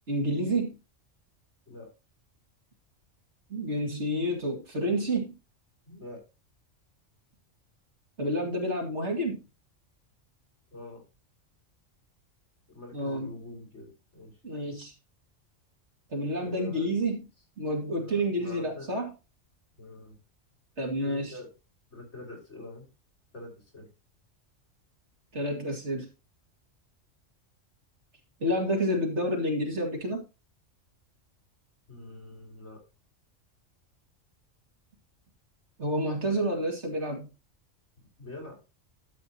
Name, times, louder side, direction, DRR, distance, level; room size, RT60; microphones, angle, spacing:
voice 1, 0.1-0.7 3.5-5.4 8.2-9.4 12.9-13.4 14.4-14.9 16.1-17.3 17.6-19.1 20.8-21.4 25.3-26.1 28.4-30.2 35.8-37.3, equal, 60° right, 2.8 m, -29 dB
voice 2, 5.9-6.2 10.7-11.0 12.7-14.3 16.4-16.9 18.0-18.9 19.8-20.1 21.0-21.5 21.9-22.9 23.3-23.9 31.9-32.8 38.2-38.6, left 2 dB, 60° left, 5.4 m, -44 dB
12.0 x 8.1 x 2.9 m
omnidirectional pair, 1.3 m